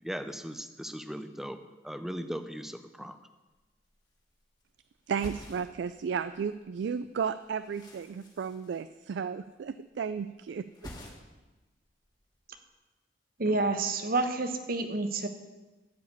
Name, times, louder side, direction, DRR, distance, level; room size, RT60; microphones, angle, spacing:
voice 1, 0.0-1.6 1.8-3.2, equal, ahead, 9 dB, 0.6 m, -38 dB
sound 1, 3.5-3.6 3.8-4.7 5.0-6.7 6.9-9.5 9.7-10.2 10.5-11.5 11.8-12.6, left 1 dB, 25° left, 1.8 m, -49 dB
voice 2, 5.1-10.7, right 6 dB, 70° right, 13 dB, 0.3 m, -33 dB
voice 3, 13.4-15.3, right 3 dB, 55° right, 7 dB, 1.0 m, -28 dB
12.5 x 4.9 x 8.2 m, 1.1 s
head